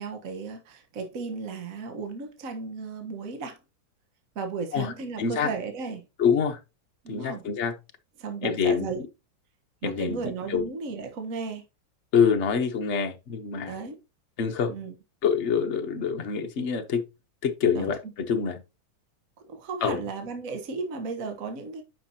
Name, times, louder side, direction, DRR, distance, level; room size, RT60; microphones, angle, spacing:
voice 1, 0.0-3.6 4.3-6.0 7.0-7.4 8.2-9.0 9.8-11.6 13.7-14.0 14.7-14.9 17.7-18.1 19.5-21.8, right 4 dB, 50° right, 1.6 m, -34 dB
voice 2, 5.2-5.5 6.2-6.6 7.1-7.7 8.4-8.9 9.8-10.2 10.5-10.6 12.1-13.7 14.4-14.7 15.2-17.0 17.4-18.0 18.3-18.6 19.8-20.0, left 6 dB, 45° left, 1.1 m, -25 dB
9.4 x 5.9 x 2.9 m
omnidirectional pair, 2.0 m